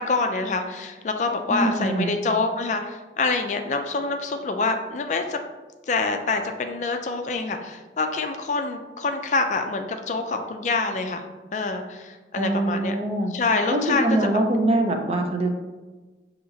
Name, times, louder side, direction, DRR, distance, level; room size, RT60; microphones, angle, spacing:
voice 1, 0.0-5.4 5.9-11.2 11.5-12.9 13.3-14.0, left 3 dB, 40° left, 5 dB, 0.3 m, -26 dB
voice 2, 1.5-2.2 12.3-13.3 13.7-15.6, right 1 dB, 35° right, 3 dB, 0.5 m, -23 dB
6.9 x 2.8 x 2.7 m, 1.2 s
head